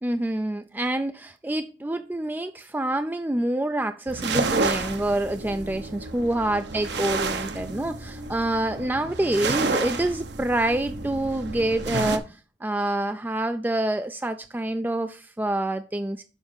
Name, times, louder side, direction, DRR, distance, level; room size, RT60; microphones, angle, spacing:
voice 1, 0.0-16.2, right 1 dB, 10° right, 0.3 m, -27 dB
sound 1, 4.1-12.2, right 3 dB, 65° right, 0.9 m, -30 dB
7.1 x 5.2 x 6.9 m
head